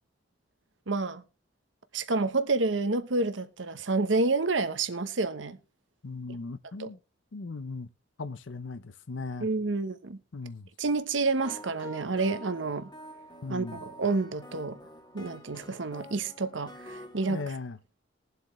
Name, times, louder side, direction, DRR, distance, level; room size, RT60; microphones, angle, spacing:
voice 1, 0.9-1.2 1.9-5.6 6.8-6.9 9.4-10.2 10.8-12.9 13.5-14.8 15.1-17.4, right 3 dB, 75° right, 1.0 m, -29 dB
voice 2, 6.0-7.0 7.3-7.9 8.2-9.5 10.3-10.7 13.4-13.8 17.3-17.8, left 3 dB, 75° left, 0.7 m, -38 dB
sound 1, 11.4-17.4, equal, 25° left, 1.7 m, -47 dB
21.0 x 7.9 x 3.1 m
head